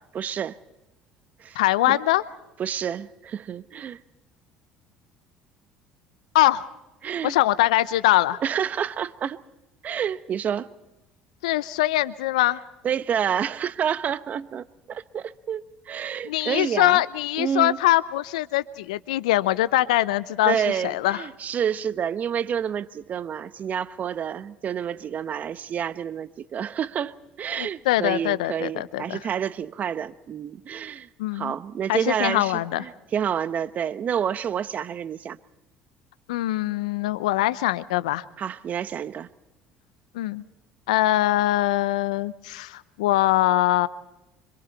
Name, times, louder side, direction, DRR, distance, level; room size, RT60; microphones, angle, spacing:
voice 1, 0.1-0.6 1.4-1.6 1.9-2.0 2.6-4.0 7.0-7.4 8.4-9.4 9.8-10.7 12.8-17.0 17.4-17.8 20.4-35.4 38.4-39.3, right 8 dB, 45° right, 1.0 m, -29 dB
voice 2, 1.5-2.2 6.3-6.7 7.2-8.4 11.4-12.6 16.2-20.6 20.8-21.2 27.6-29.2 31.2-31.5 31.9-32.8 36.3-38.2 40.1-40.4 40.9-43.9, left 16 dB, 80° left, 0.8 m, -22 dB
26.0 x 25.5 x 4.2 m
hypercardioid pair, 65°, 4 cm